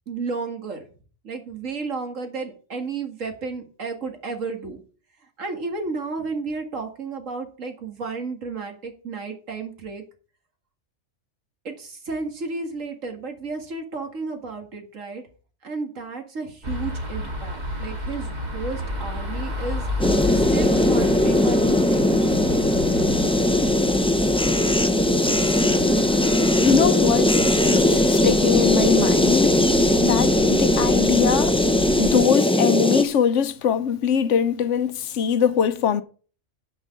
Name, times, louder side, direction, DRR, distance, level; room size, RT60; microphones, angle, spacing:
voice 1, 0.1-0.9 1.2-4.8 5.4-10.0 11.6-15.2 15.6-19.8 20.3-22.6, right 4 dB, 90° right, 2.3 m, -32 dB
sound 1, 16.6-32.2, left 1 dB, 35° right, 2.0 m, -32 dB
sound 2, 20.0-33.0, left 1 dB, 5° left, 0.5 m, -19 dB
voice 2, 26.6-27.3 27.6-29.6 30.0-31.6 32.0-36.0, left 7 dB, 75° left, 1.0 m, -22 dB
10.5 x 5.4 x 7.0 m
omnidirectional pair, 1.3 m